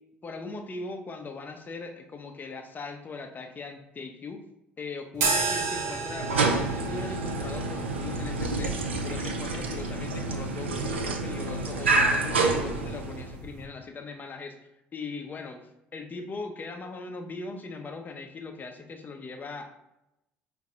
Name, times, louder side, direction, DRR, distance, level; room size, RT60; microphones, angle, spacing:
voice 1, 0.2-4.4 4.8-14.6 14.9-15.6 15.9-19.7, left 3 dB, 30° left, 5 dB, 0.6 m, -39 dB
sound 1, 5.1-13.7, right 4 dB, 65° right, 0.7 m, -35 dB
sound 2, 6.1-13.4, right 3 dB, 85° right, 0.4 m, -28 dB
4.6 x 2.2 x 2.7 m, 0.89 s
figure-of-eight pair, 55°, 6 cm